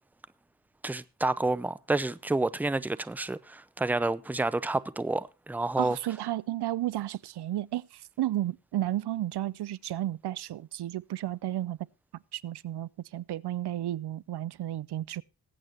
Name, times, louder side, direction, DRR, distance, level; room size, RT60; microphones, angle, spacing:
voice 1, 0.8-6.0, right 2 dB, 5° right, 0.5 m, -29 dB
voice 2, 5.8-11.8 12.3-15.2, right 13 dB, 80° right, 0.5 m, -33 dB
20.5 x 8.7 x 2.9 m
wide cardioid pair, 95°, 39 cm